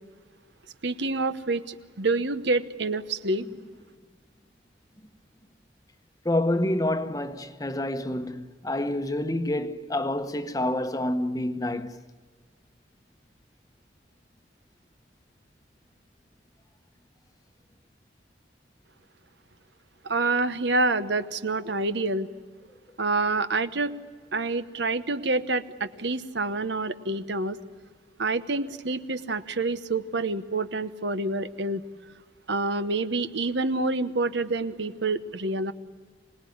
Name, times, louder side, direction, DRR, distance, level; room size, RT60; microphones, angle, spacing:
voice 1, 0.8-3.4 20.0-22.3 23.0-24.0 24.3-27.6 28.2-31.8 32.5-35.7, right 3 dB, 75° right, 1.1 m, -27 dB
voice 2, 6.2-12.0, left 1 dB, 20° left, 1.0 m, -28 dB
26.5 x 19.5 x 9.5 m
head